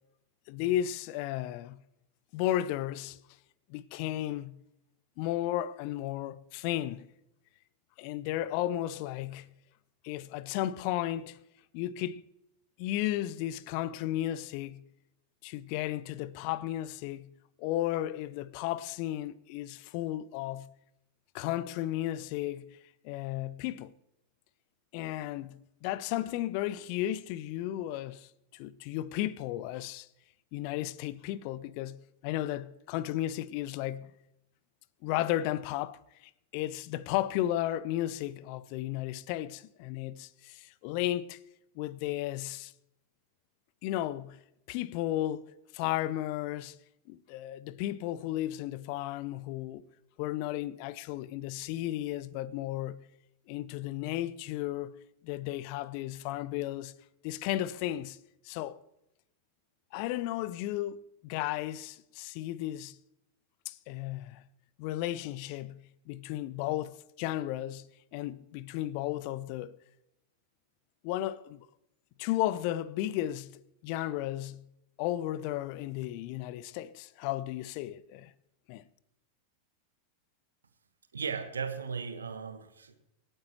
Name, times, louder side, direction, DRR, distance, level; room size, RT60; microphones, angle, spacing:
voice 1, 0.5-1.8 2.3-3.2 3.7-4.6 5.2-7.1 8.0-9.5 10.0-11.4 11.7-12.2 12.8-14.8 15.4-17.3 17.6-20.7 21.3-22.8 23.0-23.9 24.9-30.1 30.5-34.1 35.0-41.4 41.8-42.7 43.8-44.4 44.7-45.5 45.7-46.8 47.1-49.8 50.2-53.0 53.5-56.9 57.2-58.2 58.4-58.8 59.9-63.0 63.7-64.4 64.8-67.9 68.1-69.8 71.0-71.7 72.2-74.7 75.0-78.3 78.7-78.8, left 14 dB, 45° left, 0.5 m, -34 dB
voice 2, 81.1-82.9, right 6 dB, 70° right, 1.3 m, -36 dB
25.5 x 9.0 x 3.0 m
figure-of-eight pair, 90°, 0 cm